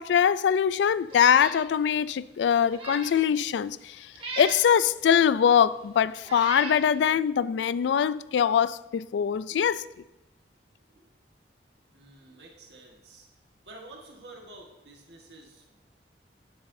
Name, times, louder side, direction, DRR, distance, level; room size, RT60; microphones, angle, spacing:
voice 1, 0.0-4.1 4.4-9.8, left 8 dB, 80° left, 0.3 m, -23 dB
Meow, 1.1-1.6 2.0-2.1 2.6-3.2 4.2-4.7 5.5-5.6 6.2-6.8, right 2 dB, 30° right, 1.5 m, -37 dB
voice 2, 11.9-13.3 13.6-15.9, right 2 dB, 70° right, 1.5 m, -50 dB
11.5 x 11.0 x 2.7 m
head